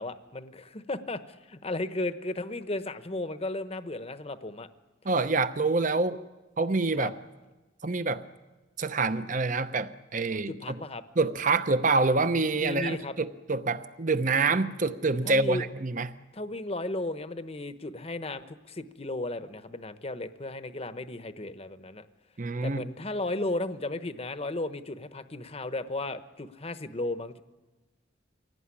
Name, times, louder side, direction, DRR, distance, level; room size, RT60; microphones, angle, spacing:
voice 1, 0.0-4.7 7.0-7.1 10.3-11.0 12.5-13.1 15.2-15.7 16.3-22.1 22.6-27.4, left 2 dB, 30° left, 11 dB, 1.0 m, -35 dB
voice 2, 5.0-6.2 6.6-7.1 7.8-8.2 8.8-10.8 11.2-16.1 22.4-22.8, right 3 dB, 40° right, 12 dB, 0.8 m, -26 dB
24.0 x 17.5 x 9.8 m, 1.2 s
head